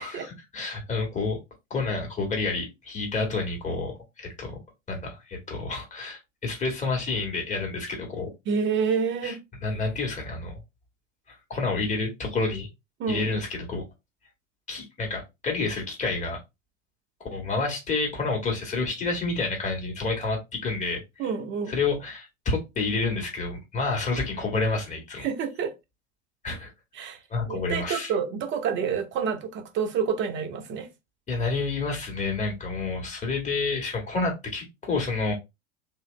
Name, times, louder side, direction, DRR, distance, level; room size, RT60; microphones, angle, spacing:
voice 1, 0.0-1.4 1.7-3.9 4.2-4.6 4.9-8.3 9.2-9.3 9.6-10.6 11.5-12.7 13.1-13.8 14.7-16.4 17.2-21.2 21.7-25.3 26.4-26.7 27.3-28.1 31.3-35.3, left 3 dB, 20° left, 1.7 m, -29 dB
voice 2, 8.5-9.4 13.0-13.4 21.2-21.7 25.2-25.7 26.9-27.2 27.5-30.9, right 6 dB, 30° right, 0.9 m, -28 dB
3.3 x 2.8 x 3.1 m
figure-of-eight pair, 80°, 37 cm